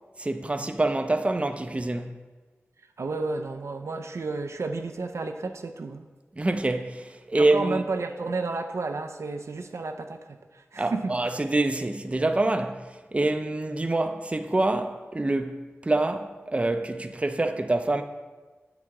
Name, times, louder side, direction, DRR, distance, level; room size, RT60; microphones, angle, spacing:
voice 1, 0.2-2.1 6.4-7.8 10.8-15.6 15.8-18.0, right 2 dB, 25° right, 0.4 m, -26 dB
voice 2, 3.0-6.1 7.3-11.4, right 3 dB, 85° right, 0.4 m, -32 dB
8.0 x 4.7 x 3.6 m
wide cardioid pair, 60°, 5 cm